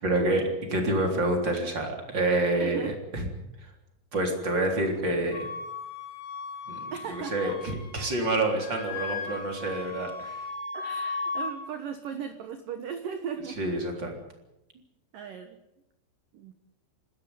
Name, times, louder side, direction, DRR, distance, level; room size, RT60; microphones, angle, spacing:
voice 1, 0.0-3.3 3.6-3.7 4.1-5.5 6.7-10.5 13.6-14.2, right 2 dB, 25° right, 3 dB, 3.5 m, -28 dB
voice 2, 2.6-2.9 6.9-7.6 10.7-13.6 15.1-15.6 16.3-16.5, right 7 dB, 75° right, 8 dB, 2.0 m, -37 dB
Door, 4.4-5.6, right 3 dB, 45° right, 8.3 m, -50 dB
Wind instrument woodwind instrument, 5.3-8.2 8.5-11.6, left 4 dB, 90° left, 6.3 m, -36 dB
27.5 x 13.0 x 9.6 m, 0.90 s
omnidirectional pair, 6.0 m